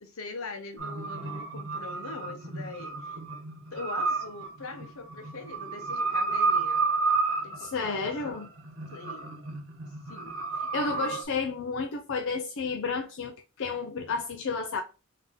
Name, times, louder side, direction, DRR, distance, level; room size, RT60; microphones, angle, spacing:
voice 1, 0.0-3.2 3.7-6.8 7.4-8.4 8.9-9.3 10.1-10.4 10.8-11.1, left 3 dB, 80° left, 0.9 m, -42 dB
sound 1, 0.8-11.2, right 4 dB, 70° right, 1.1 m, -31 dB
voice 2, 7.6-8.5 10.7-14.8, left 4 dB, 65° left, 0.5 m, -31 dB
3.8 x 2.7 x 3.5 m
head